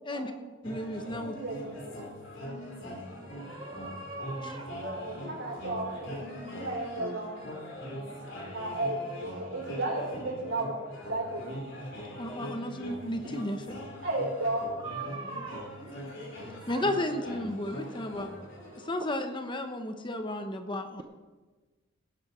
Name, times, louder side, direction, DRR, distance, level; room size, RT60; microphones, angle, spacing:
sound 1, 0.6-18.9, equal, 65° left, 3.9 m, -42 dB
voice 1, 0.6-1.3 4.4-4.6 12.2-13.7 16.7-18.5 18.8-21.0, left 1 dB, 25° left, 6 dB, 1.0 m, -33 dB
voice 2, 1.2-1.9 4.8-7.5 7.8-8.1 8.5-10.8 11.1-11.5 14.0-14.6, right 2 dB, 70° right, -2 dB, 5.4 m, -34 dB
voice 3, 3.4-5.0 14.8-15.7 16.6-16.8, right 3 dB, 25° right, 4 dB, 0.7 m, -40 dB
18.5 x 10.5 x 4.4 m, 1.3 s
head